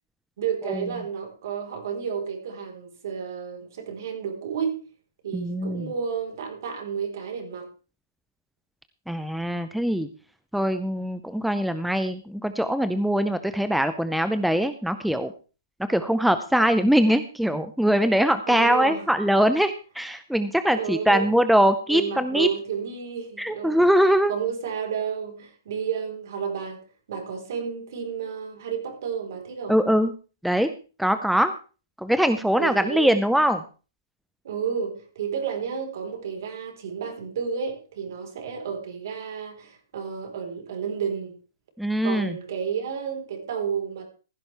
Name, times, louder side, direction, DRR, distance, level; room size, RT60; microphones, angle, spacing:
voice 1, 0.4-4.9 5.2-7.7 18.5-19.1 20.7-21.3 21.9-23.9 24.3-26.8 27.1-29.8 32.6-33.2 34.4-41.3 42.0-44.0, right 7 dB, 55° right, 4.0 m, -31 dB
voice 2, 5.3-5.9 9.1-10.1 10.5-15.3 15.9-22.5 23.4-24.3 29.7-30.1 30.4-30.7 31.0-31.5 32.0-33.6 41.8-42.4, equal, ahead, 0.5 m, -22 dB
15.5 x 11.5 x 3.4 m
hypercardioid pair, 155°, 2 cm